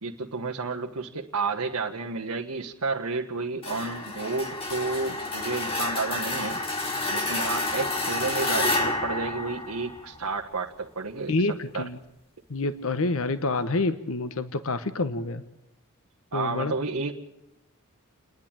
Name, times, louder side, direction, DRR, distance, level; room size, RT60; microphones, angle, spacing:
voice 1, 0.0-11.5 11.7-11.9 16.3-17.1, right 4 dB, 80° right, 0 dB, 1.3 m, -31 dB
sound 1, 3.6-10.3, left 2 dB, 25° left, 2.1 m, -29 dB
voice 2, 11.3-12.0 12.5-15.4 16.3-16.7, left 2 dB, 65° left, 11 dB, 1.0 m, -27 dB
29.5 x 10.5 x 8.9 m, 0.90 s
head